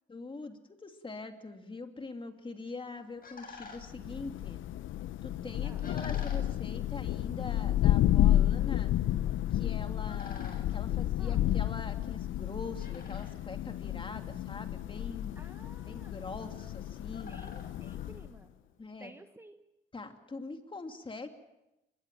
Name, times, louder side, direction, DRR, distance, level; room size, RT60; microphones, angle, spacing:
voice 1, 0.1-4.6 5.2-8.9 9.5-15.4 15.8-17.3 18.8-19.1 19.9-21.3, left 3 dB, 25° left, 6 dB, 2.7 m, -43 dB
sound 1, 2.6-18.8, left 4 dB, 45° left, 7.2 m, -54 dB
Thunder, 3.8-18.4, left 13 dB, 80° left, 0.8 m, -31 dB
voice 2, 11.2-11.6 15.4-16.2 17.3-18.6 19.0-19.6, right 2 dB, 10° right, 8 dB, 1.2 m, -54 dB
24.0 x 21.0 x 7.6 m, 0.94 s
cardioid pair, 90°, 20 cm